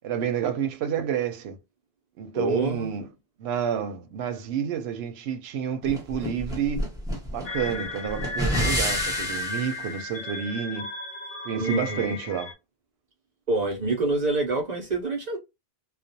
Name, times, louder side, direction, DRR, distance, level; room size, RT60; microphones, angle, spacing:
voice 1, 0.0-1.6 2.2-3.1 3.4-6.8 7.3-10.9 11.4-12.5, right 8 dB, 85° right, 0.8 m, -29 dB
voice 2, 2.3-3.0 11.6-12.1 13.5-15.4, right 2 dB, 50° right, 0.7 m, -26 dB
sound 1, 5.9-9.7, equal, 5° right, 0.7 m, -29 dB
sound 2, 7.4-12.5, left 3 dB, 60° left, 0.7 m, -33 dB
2.4 x 2.1 x 2.6 m
omnidirectional pair, 1.1 m